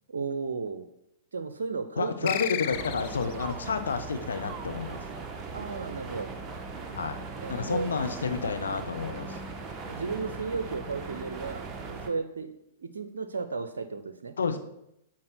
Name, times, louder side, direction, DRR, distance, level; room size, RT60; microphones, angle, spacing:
voice 1, 0.1-0.9 1.3-2.4 5.5-6.3 7.4-7.9 9.9-12.5 12.8-14.4, right 4 dB, 70° right, 10 dB, 0.6 m, -34 dB
voice 2, 2.0-5.0 6.9-7.2 7.5-9.4 14.4-14.6, left 5 dB, 70° left, 7 dB, 0.9 m, -30 dB
sound 1, 2.3-3.4, left 12 dB, 45° left, 0.5 m, -33 dB
sound 2, 2.7-12.1, right 4 dB, 20° right, 1.1 m, -39 dB
7.5 x 4.7 x 5.9 m, 0.81 s
figure-of-eight pair, 105°, 0 cm